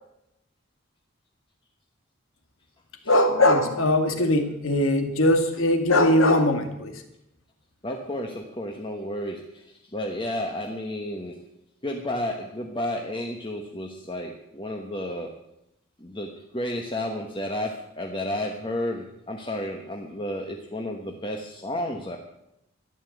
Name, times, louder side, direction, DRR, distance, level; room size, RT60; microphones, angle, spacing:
voice 1, 3.1-7.0, left 1 dB, 80° left, 6 dB, 2.1 m, -21 dB
voice 2, 7.8-11.4 11.8-15.3 16.0-22.2, left 1 dB, 25° left, 2 dB, 1.2 m, -32 dB
13.0 x 11.0 x 8.0 m, 0.85 s
head